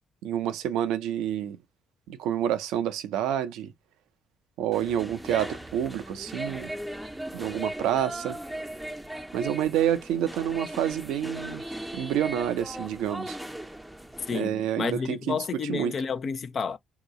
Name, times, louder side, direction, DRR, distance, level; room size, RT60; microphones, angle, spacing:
voice 1, 0.2-1.6 2.1-3.7 4.6-6.7 7.3-8.4 9.3-11.6 11.9-13.4 14.3-15.4 15.7-15.9, right 10 dB, 75° right, 0.5 m, -28 dB
sound 1, 4.7-14.4, right 1 dB, 5° right, 0.6 m, -38 dB
voice 2, 14.3-16.8, left 6 dB, 55° left, 0.5 m, -31 dB
2.8 x 2.2 x 3.8 m
hypercardioid pair, 50°, 0 cm